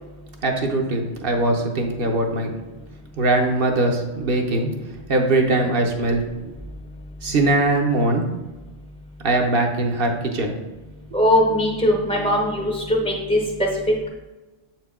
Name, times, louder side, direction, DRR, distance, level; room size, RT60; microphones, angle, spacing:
voice 1, 0.4-2.5 3.2-4.7 5.1-6.3 7.2-8.2 9.2-10.6, right 2 dB, 60° right, 2 dB, 1.1 m, -21 dB
voice 2, 11.1-13.4, left 1 dB, 5° left, 0 dB, 0.6 m, -20 dB
7.6 x 4.5 x 3.6 m, 1.1 s
omnidirectional pair, 1.1 m